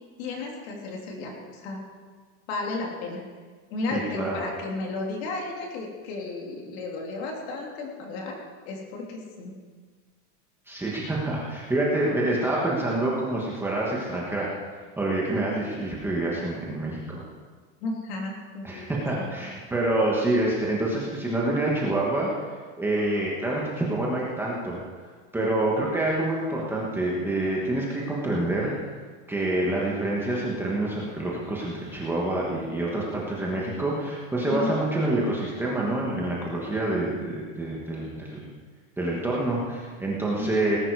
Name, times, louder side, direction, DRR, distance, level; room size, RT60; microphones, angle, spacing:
voice 1, 0.2-1.8 2.5-3.2 3.7-8.4 8.6-9.5 17.8-19.5 34.5-34.8 40.4-40.5, left 3 dB, 45° left, 0 dB, 3.2 m, -33 dB
voice 2, 3.9-4.4 10.7-14.5 15.0-17.2 18.6-22.3 22.8-24.8 25.3-28.7 29.3-38.4 39.0-40.8, right 2 dB, 5° right, -5 dB, 1.4 m, -27 dB
19.0 x 11.0 x 4.8 m, 1.5 s
supercardioid pair, 170°, 44 cm